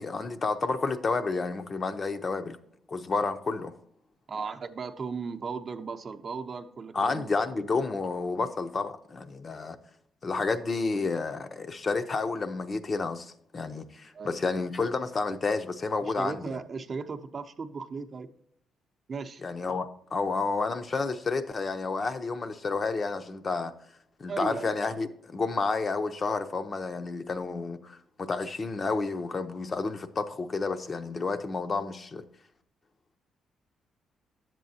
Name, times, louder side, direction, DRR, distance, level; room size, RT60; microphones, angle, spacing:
voice 1, 0.0-2.6 2.9-3.7 6.9-9.8 10.2-16.6 19.4-23.7 24.2-32.2, left 4 dB, 35° left, 0.6 m, -30 dB
voice 2, 4.3-7.3 14.1-14.4 16.0-18.3 19.1-19.4 24.3-24.7, right 5 dB, 45° right, 0.6 m, -36 dB
10.0 x 7.5 x 2.7 m
cardioid pair, 90°, 0 cm